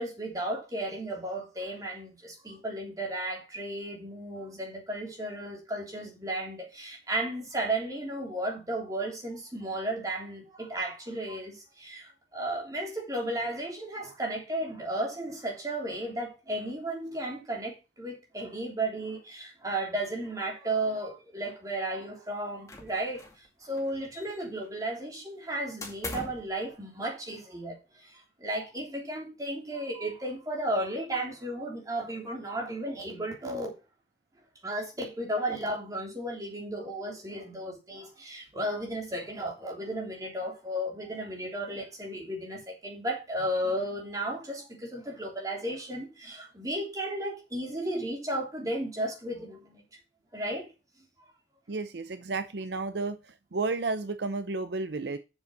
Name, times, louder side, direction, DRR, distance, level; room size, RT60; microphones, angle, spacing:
voice 1, 0.0-23.2 23.6-27.8 28.1-33.7 34.6-49.8 50.3-50.7, right 1 dB, 20° right, 3.3 m, -34 dB
sound 1, 22.7-23.5 23.7-24.7 25.8-26.5, left 2 dB, 20° left, 2.2 m, -41 dB
voice 2, 51.7-53.2 53.5-55.2, right 3 dB, 70° right, 0.6 m, -32 dB
7.1 x 6.8 x 5.2 m
head